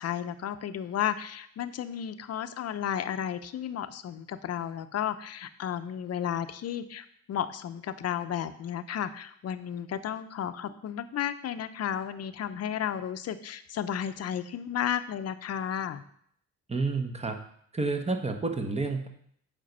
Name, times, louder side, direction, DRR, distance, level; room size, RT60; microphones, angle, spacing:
voice 1, 0.0-16.0, left 9 dB, 55° left, 12 dB, 0.7 m, -33 dB
voice 2, 16.7-17.4 17.7-19.1, right 3 dB, 20° right, 5 dB, 1.1 m, -29 dB
7.5 x 5.2 x 5.4 m, 0.67 s
cardioid pair, 90°, 30 cm